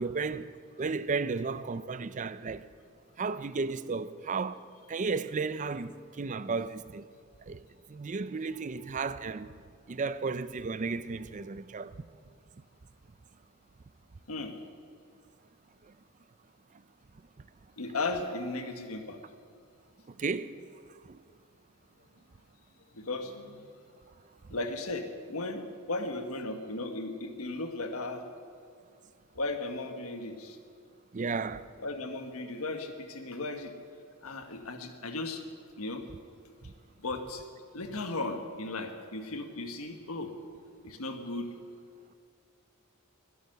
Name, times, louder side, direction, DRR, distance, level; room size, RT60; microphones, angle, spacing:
voice 1, 0.0-2.7 3.2-7.1 7.5-9.5 9.9-12.0 15.8-15.9 17.4-17.5 20.1-20.6 21.0-21.2 31.1-31.7 36.6-36.7, right 4 dB, 35° right, 0.4 m, -34 dB
voice 2, 17.8-19.2 22.9-23.7 24.5-28.2 29.3-30.6 31.8-33.7 34.2-35.4 35.8-36.0 37.0-37.4 37.7-40.3 40.8-41.5, left 2 dB, 90° left, 1.5 m, -36 dB
22.0 x 8.5 x 6.7 m
head